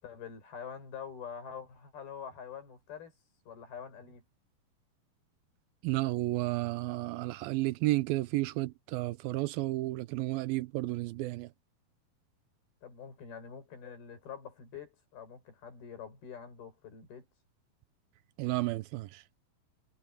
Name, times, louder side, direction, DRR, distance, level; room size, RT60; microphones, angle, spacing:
voice 1, 0.0-3.1 3.5-4.2 12.8-17.3, left 7 dB, 90° left, 7.8 m, -45 dB
voice 2, 5.8-11.5 18.4-19.2, right 18 dB, 90° right, 2.5 m, -32 dB
omnidirectional pair, 4.2 m